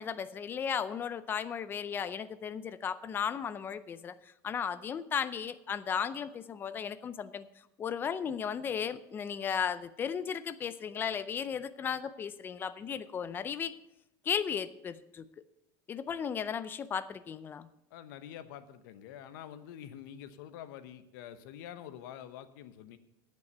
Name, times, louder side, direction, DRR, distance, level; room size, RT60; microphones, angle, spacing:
voice 1, 0.0-7.5 7.8-13.7 14.2-15.3 15.9-17.7, left 7 dB, 20° left, 14 dB, 0.5 m, -35 dB
voice 2, 17.9-23.0, left 10 dB, 80° left, 11 dB, 1.0 m, -47 dB
9.8 x 8.3 x 6.6 m, 0.85 s
cardioid pair, 165°, 10 cm